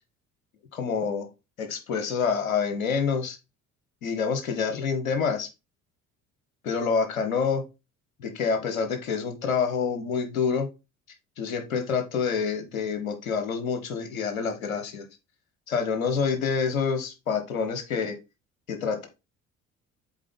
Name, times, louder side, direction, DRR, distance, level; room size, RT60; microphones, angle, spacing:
voice 1, 0.7-1.3 1.6-3.4 4.0-5.5 6.6-7.6 8.2-10.7 11.4-15.1 15.7-18.1 18.7-19.1, left 6 dB, 75° left, 7 dB, 1.1 m, -27 dB
7.3 x 4.2 x 3.6 m, 0.26 s
figure-of-eight pair, 55°, 41 cm